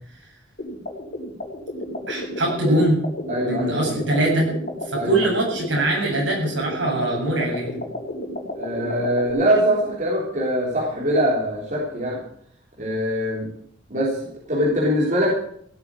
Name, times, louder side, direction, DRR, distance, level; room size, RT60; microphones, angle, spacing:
sound 1, 0.6-9.3, left 1 dB, 50° left, 4.6 m, -32 dB
voice 1, 2.1-3.0 3.4-4.5 4.8-7.8, right 1 dB, 70° right, -2 dB, 7.7 m, -22 dB
voice 2, 3.3-4.1 4.9-5.1 8.5-12.2 12.8-13.5 13.9-15.4, equal, 45° right, -5 dB, 3.6 m, -23 dB
16.5 x 8.0 x 8.9 m, 0.67 s
head